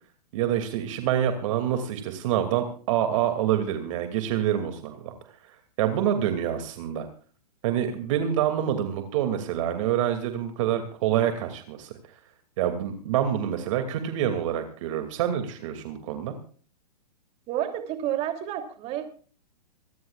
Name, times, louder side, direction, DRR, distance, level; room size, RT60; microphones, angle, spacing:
voice 1, 0.3-5.1 5.8-7.1 7.6-11.9 12.6-16.3, right 10 dB, 50° right, 6 dB, 2.6 m, -26 dB
voice 2, 17.5-19.1, right 11 dB, 30° right, 6 dB, 3.0 m, -30 dB
26.0 x 14.5 x 2.5 m, 0.43 s
hypercardioid pair, 140°, 21 cm